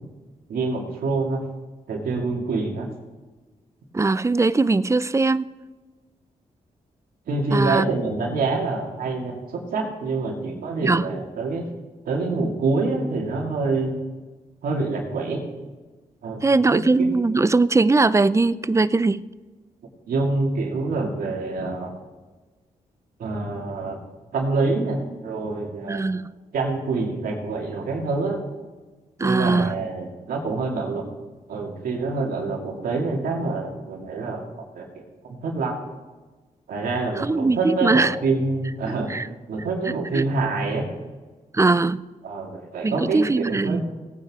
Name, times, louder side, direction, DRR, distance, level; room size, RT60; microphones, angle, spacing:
voice 1, 0.5-1.4 1.9-2.9 7.3-11.6 12.1-13.9 14.6-15.4 16.2-16.4 16.7-17.1 20.1-22.0 23.2-24.0 24.3-26.0 26.5-28.4 29.2-31.0 31.5-34.4 34.7-35.8 36.7-39.1 39.5-40.9 42.2-43.8, right 3 dB, 85° right, 0 dB, 2.4 m, -26 dB
voice 2, 3.9-5.5 7.5-7.9 10.8-11.1 16.4-19.3 25.9-26.3 29.2-29.7 37.2-38.1 38.9-39.3 40.1-40.2 41.5-42.0 42.8-43.8, right 3 dB, 20° right, 17 dB, 0.4 m, -20 dB
17.5 x 9.0 x 3.7 m, 1.3 s
cardioid pair, 60°, 15 cm